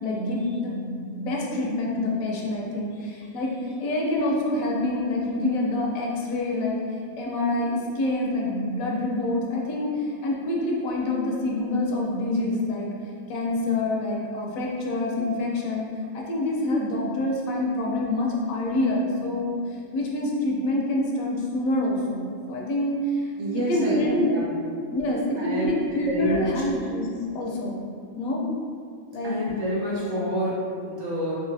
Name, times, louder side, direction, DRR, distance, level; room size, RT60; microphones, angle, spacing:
voice 1, 0.0-0.9 1.2-6.8 7.2-12.9 13.3-15.9 16.1-24.4 24.9-27.1 27.3-27.8 28.2-28.4 29.1-29.4, left 1 dB, 80° left, -2 dB, 1.1 m, -26 dB
voice 2, 23.4-24.0 24.3-24.5 25.4-25.7 26.0-26.5 29.2-31.3, equal, 70° right, -7 dB, 1.3 m, -28 dB
4.0 x 2.8 x 2.6 m, 2.2 s
omnidirectional pair, 1.4 m